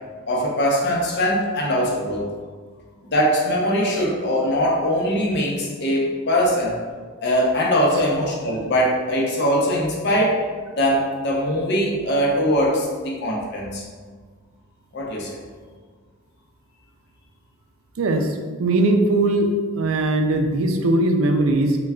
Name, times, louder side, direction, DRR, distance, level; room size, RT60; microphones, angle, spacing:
voice 1, 0.3-2.3 3.1-6.8 7.2-10.4 10.8-13.8 14.9-15.4, equal, 50° left, -2 dB, 0.7 m, -21 dB
voice 2, 18.0-18.3 18.6-19.5 19.8-21.8, right 2 dB, 65° right, 5 dB, 0.4 m, -19 dB
3.2 x 2.2 x 3.5 m, 1.5 s
head